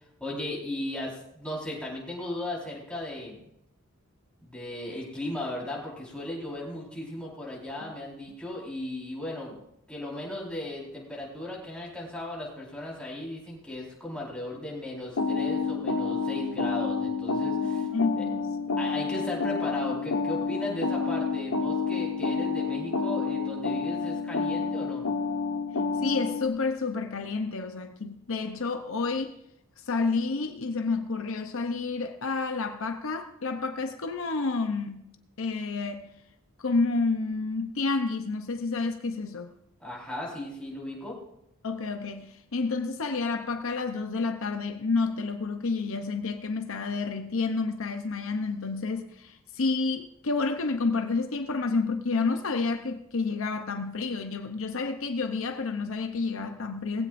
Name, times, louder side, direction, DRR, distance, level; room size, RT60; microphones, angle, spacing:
voice 1, 0.2-3.4 4.4-9.6 9.9-17.9 18.2-18.3 18.8-25.0 39.8-41.2, left 1 dB, 5° left, 4.6 m, -36 dB
sound 1, 15.2-26.5, left 4 dB, 85° left, 1.4 m, -29 dB
voice 2, 17.9-18.5 26.0-29.4 29.8-35.1 35.4-36.1 36.6-39.5 41.6-57.1, left 4 dB, 65° left, 0.8 m, -29 dB
19.5 x 16.0 x 2.6 m
head